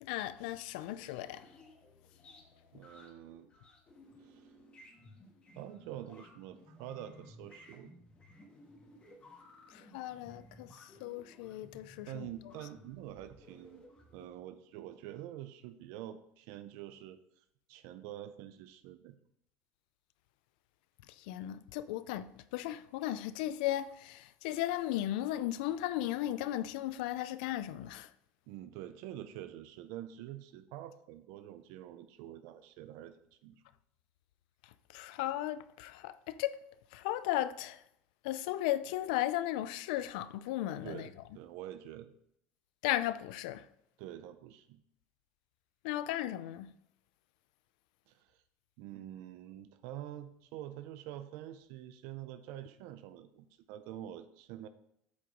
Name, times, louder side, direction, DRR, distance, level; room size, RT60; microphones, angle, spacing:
voice 1, 0.0-1.5 9.7-12.3 21.2-28.1 34.6-36.6 36.9-37.8 38.2-41.1 42.8-43.7 45.8-46.7, left 14 dB, 90° left, 0.5 m, -36 dB
sound 1, 1.0-14.3, left 1 dB, 25° left, 1.7 m, -58 dB
voice 2, 2.7-3.5 4.2-4.5 5.6-7.9 12.1-13.9 14.1-19.2 28.5-33.2 33.4-33.6 40.8-42.1 44.0-44.8 48.1-48.3 48.8-54.7, right 12 dB, 70° right, 0.5 m, -46 dB
8.4 x 4.7 x 5.1 m
cardioid pair, 145°, 5 cm